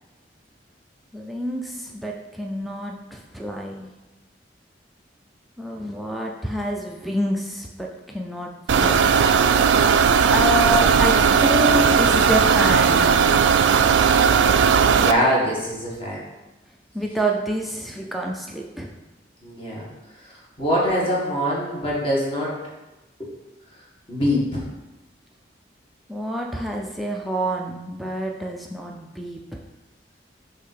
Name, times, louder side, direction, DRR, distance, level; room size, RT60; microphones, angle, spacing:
voice 1, 1.1-3.9 5.6-9.1 10.3-13.1 16.9-18.9 26.1-29.4, right 1 dB, ahead, -1 dB, 0.4 m, -28 dB
sound 1, 8.7-15.1, right 6 dB, 85° right, 0.3 m, -17 dB
voice 2, 14.9-16.2 19.4-19.9 20.6-22.6 23.2-23.3 24.1-24.6, equal, 30° left, -5 dB, 1.7 m, -23 dB
6.7 x 2.8 x 5.6 m, 1.1 s
head